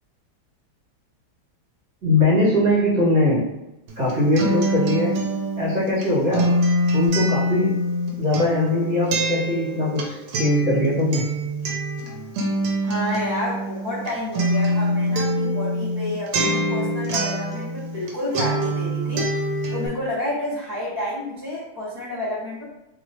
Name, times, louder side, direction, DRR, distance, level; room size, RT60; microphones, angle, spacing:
voice 1, 2.0-3.4 4.0-5.2 5.6-6.6 6.9-7.7 8.2-11.2, left 1 dB, 50° right, -9 dB, 1.8 m, -21 dB
Acoustic guitar, 3.9-18.1 18.3-19.9, right 1 dB, 85° right, 1.5 m, -24 dB
voice 2, 12.8-19.5 19.7-22.6, left 1 dB, 10° left, -10 dB, 0.8 m, -30 dB
3.5 x 3.0 x 2.6 m, 0.92 s
omnidirectional pair, 2.2 m